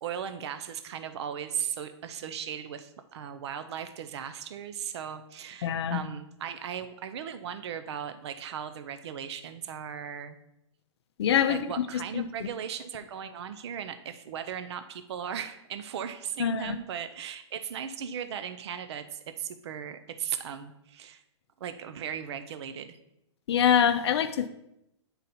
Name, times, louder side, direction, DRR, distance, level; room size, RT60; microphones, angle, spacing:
voice 1, 0.0-10.4 11.5-21.2 21.6-23.0, right 8 dB, 60° right, 10 dB, 0.5 m, -37 dB
voice 2, 5.6-6.0 11.2-11.7 12.1-12.5 16.4-16.8 23.5-24.5, left 8 dB, 60° left, 9 dB, 0.5 m, -25 dB
9.4 x 4.0 x 4.1 m, 0.83 s
hypercardioid pair, 160°, 16 cm